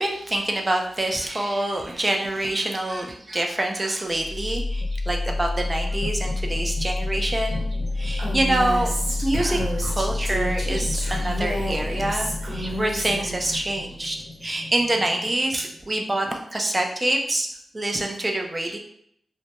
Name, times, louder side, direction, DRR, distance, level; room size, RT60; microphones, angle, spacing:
voice 1, 0.0-7.6 8.0-8.9 9.2-14.2 14.4-17.5 17.7-18.8, right 1 dB, 20° right, 2 dB, 0.4 m, -26 dB
sound 1, 4.1-16.0, left 2 dB, 60° left, 0.6 m, -29 dB
Female speech woman speaking, 8.2-13.6, right 1 dB, 55° right, 0.9 m, -31 dB
2.2 x 2.0 x 2.8 m, 0.70 s
wide cardioid pair, 105°, 0 cm